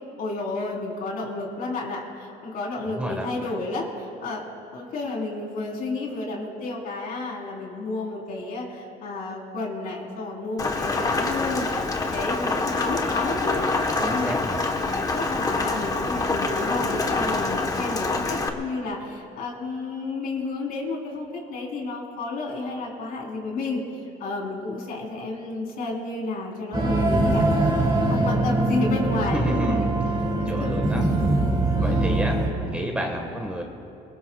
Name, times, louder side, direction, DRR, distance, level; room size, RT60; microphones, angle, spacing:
voice 1, 0.2-4.4 4.7-13.8 14.1-14.3 15.0-27.5 27.9-29.9 30.4-30.8 31.7-32.2, left 3 dB, 55° left, -1 dB, 4.1 m, -31 dB
voice 2, 2.8-3.3 14.0-14.6 29.3-30.0 30.4-31.0 31.8-33.6, equal, 5° right, 1 dB, 1.6 m, -29 dB
Rain, 10.6-18.5, left 3 dB, 20° left, 1.2 m, -26 dB
sound 1, 26.7-32.5, right 2 dB, 25° right, 2.9 m, -22 dB
27.5 x 20.5 x 2.4 m, 2.6 s
cardioid pair, 120°, 17 cm